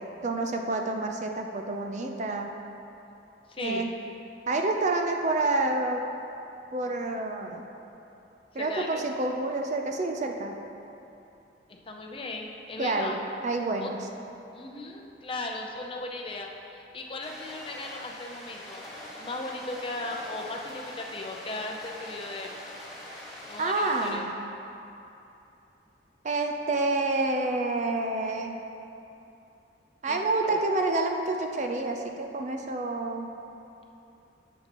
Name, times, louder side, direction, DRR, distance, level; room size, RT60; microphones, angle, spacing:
voice 1, 0.0-2.5 3.6-3.9 4.5-6.0 6.7-7.6 8.5-10.6 12.8-14.0 23.6-24.4 26.2-28.6 30.0-33.3, right 2 dB, 40° right, 3 dB, 0.5 m, -28 dB
voice 2, 3.5-3.9 8.6-9.0 11.9-13.2 13.8-13.9 14.5-18.9 19.2-22.6 23.5-24.3 30.1-30.6, left 2 dB, 30° left, 1 dB, 0.6 m, -37 dB
sound 1, 17.2-24.1, left 1 dB, ahead, 1.8 m, -43 dB
11.0 x 7.2 x 3.0 m, 2.9 s
head